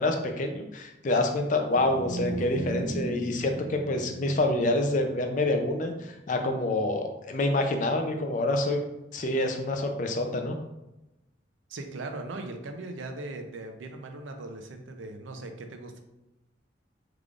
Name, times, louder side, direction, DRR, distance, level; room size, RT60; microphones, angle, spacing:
voice 1, 0.0-8.8 9.1-10.6, left 2 dB, 40° left, 4 dB, 0.4 m, -27 dB
sound 1, 1.6-8.0, right 1 dB, 55° right, 0.8 m, -39 dB
voice 2, 11.7-16.0, right 2 dB, 85° right, 5 dB, 0.5 m, -39 dB
3.6 x 3.3 x 2.4 m, 0.96 s
head